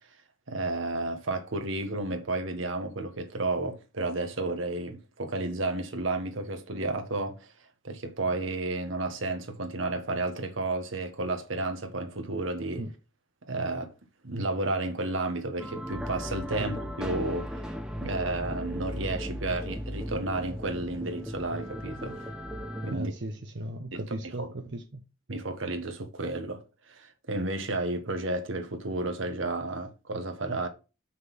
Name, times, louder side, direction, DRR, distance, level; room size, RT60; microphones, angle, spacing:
voice 1, 0.5-7.5 7.8-12.8 13.5-13.9 14.2-17.7 18.0-22.2 22.8-23.1 23.9-24.5 25.3-26.6 26.9-30.7, right 2 dB, 85° right, 1.3 m, -32 dB
sound 1, 15.6-22.9, equal, 5° right, 0.7 m, -36 dB
voice 2, 22.9-25.0, right 1 dB, 60° right, 0.8 m, -36 dB
6.5 x 3.9 x 6.0 m
head